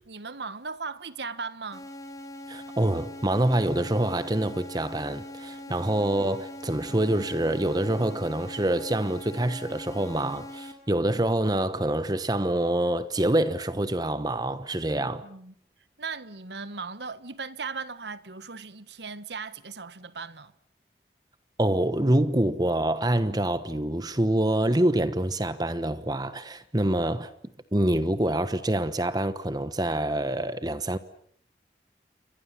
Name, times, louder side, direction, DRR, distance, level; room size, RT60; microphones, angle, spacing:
voice 1, 0.1-1.9 5.7-5.8 15.0-15.5 16.0-20.5, right 4 dB, 75° right, 1.4 m, -38 dB
sound 1, 1.7-10.7, left 1 dB, 20° left, 4.7 m, -42 dB
voice 2, 2.5-15.2 21.6-27.3 27.7-31.0, right 1 dB, 20° right, 1.1 m, -26 dB
29.0 x 24.0 x 7.4 m
head